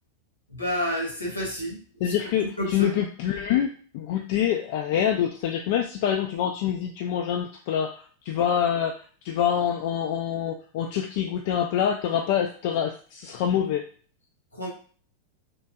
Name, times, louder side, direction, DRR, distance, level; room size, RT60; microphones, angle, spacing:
voice 1, 0.5-1.8 2.6-2.9 14.5-14.7, equal, 80° left, 0 dB, 1.1 m, -29 dB
voice 2, 2.0-8.9 9.2-13.8, left 9 dB, 50° left, 2 dB, 0.3 m, -26 dB
3.1 x 2.5 x 2.3 m, 0.43 s
figure-of-eight pair, 90°, 0 cm